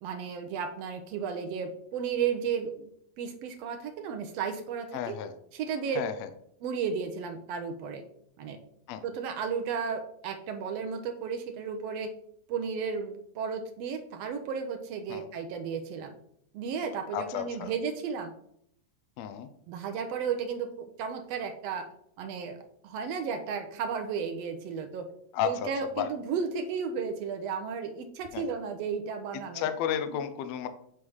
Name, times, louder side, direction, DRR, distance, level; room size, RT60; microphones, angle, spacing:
voice 1, 0.0-2.8 3.2-5.2 5.5-6.1 6.6-8.0 8.4-8.6 9.0-12.1 12.5-16.1 16.5-18.3 19.7-21.9 22.2-25.1 25.4-29.7, right 6 dB, 75° right, 6 dB, 1.5 m, -33 dB
voice 2, 4.9-5.3 5.9-6.3 8.9-9.0 15.1-15.3 17.1-17.7 19.2-19.5 25.3-25.7 26.0-26.1 28.3-28.5 29.5-30.7, left 9 dB, 75° left, 9 dB, 1.7 m, -32 dB
7.9 x 3.2 x 5.4 m, 0.70 s
omnidirectional pair, 3.4 m